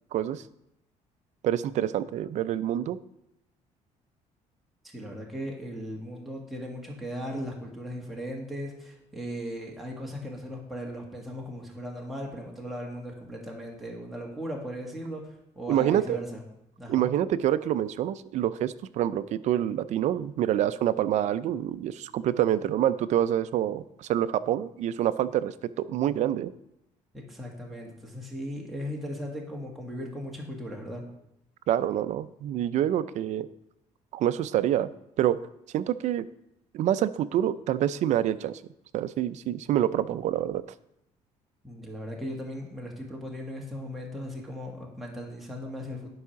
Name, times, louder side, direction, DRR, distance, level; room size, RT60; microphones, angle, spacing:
voice 1, 0.1-0.4 1.4-3.0 15.7-16.2 16.9-26.5 31.7-33.5 34.1-34.9 35.2-35.4 35.7-36.3 36.7-38.6 38.9-40.6, right 11 dB, 60° right, 15 dB, 0.5 m, -26 dB
voice 2, 4.8-15.2 15.5-16.4 16.8-17.1 27.3-31.0 41.6-46.1, equal, ahead, -2 dB, 1.7 m, -37 dB
11.0 x 4.8 x 5.8 m, 0.83 s
cardioid pair, 130°, 14 cm